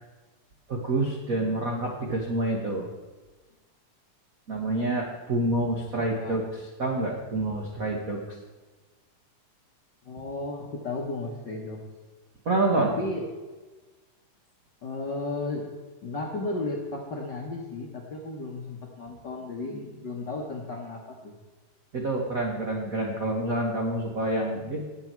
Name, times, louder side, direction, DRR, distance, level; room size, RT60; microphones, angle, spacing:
voice 1, 0.7-2.9 4.5-8.2 12.4-12.9 21.9-24.8, right 2 dB, 70° right, 0 dB, 0.8 m, -27 dB
voice 2, 10.0-11.8 12.8-13.2 14.8-15.6 16.0-21.3, left 2 dB, 55° left, -1 dB, 1.2 m, -34 dB
18.5 x 7.3 x 4.6 m, 1.2 s
omnidirectional pair, 3.8 m